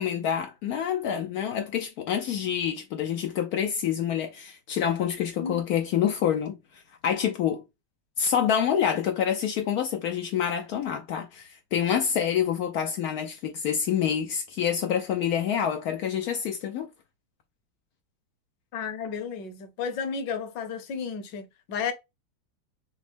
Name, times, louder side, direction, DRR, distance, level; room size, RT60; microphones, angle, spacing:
voice 1, 0.0-7.6 8.2-16.9, left 8 dB, 90° left, 0.8 m, -27 dB
voice 2, 18.7-21.9, left 6 dB, 70° left, 1.3 m, -33 dB
6.1 x 2.0 x 3.3 m
omnidirectional pair, 2.2 m